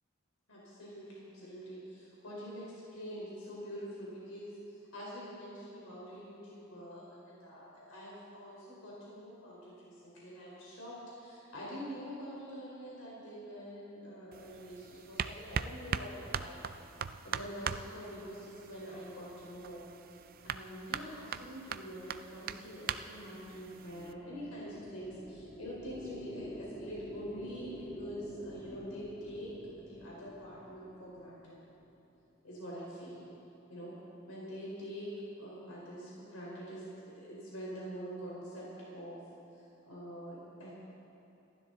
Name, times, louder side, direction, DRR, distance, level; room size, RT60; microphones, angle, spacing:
voice 1, 0.5-16.6 17.2-19.8 20.4-31.6 32.4-33.3 33.7-33.9 34.3-35.1 35.4-39.2 39.5-40.7, equal, 85° left, -6 dB, 4.2 m, -45 dB
sound 1, 14.3-24.1, right 7 dB, 45° right, 0.4 m, -41 dB
sound 2, 23.7-32.2, left 1 dB, 15° left, 1.1 m, -48 dB
27.5 x 13.0 x 3.9 m, 3.0 s
head